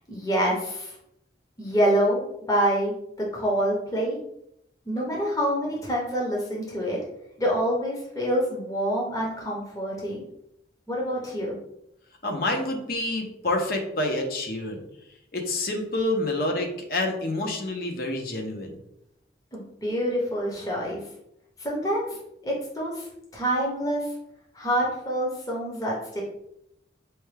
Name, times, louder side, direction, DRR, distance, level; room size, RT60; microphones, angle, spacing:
voice 1, 0.1-0.9 1.6-2.2 2.5-2.9 3.3-4.2 4.9-7.0 7.4-10.2 10.9-11.6 19.5-21.0 21.6-22.2 22.4-23.1 23.3-24.1 24.5-26.2, equal, 20° left, -3 dB, 0.8 m, -26 dB
voice 2, 12.2-14.8 15.3-18.8, left 2 dB, 55° left, 2 dB, 0.7 m, -28 dB
4.4 x 2.2 x 3.2 m, 0.78 s
head